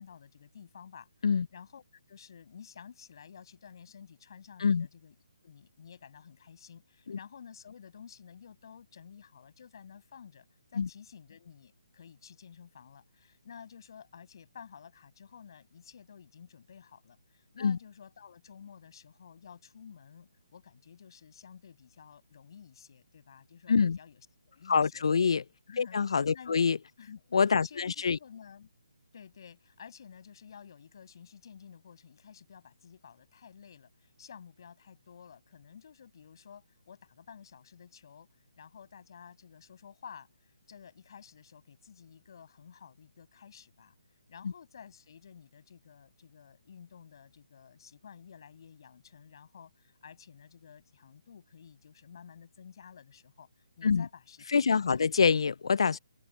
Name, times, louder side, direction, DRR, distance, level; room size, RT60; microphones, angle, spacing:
voice 1, 0.0-1.1 1.5-5.1 5.4-10.4 10.7-25.0 25.7-26.6 27.0-27.3 27.6-27.9 28.2-28.7 29.1-38.3 38.6-43.9 44.3-53.5 53.8-55.1, left 7 dB, 45° left, 6.9 m, -52 dB
voice 2, 24.7-25.4 25.8-26.8 27.3-28.2 44.4-44.5 53.8-54.1 54.5-56.0, left 5 dB, 65° left, 0.4 m, -25 dB
open air
hypercardioid pair, 165°, 3 cm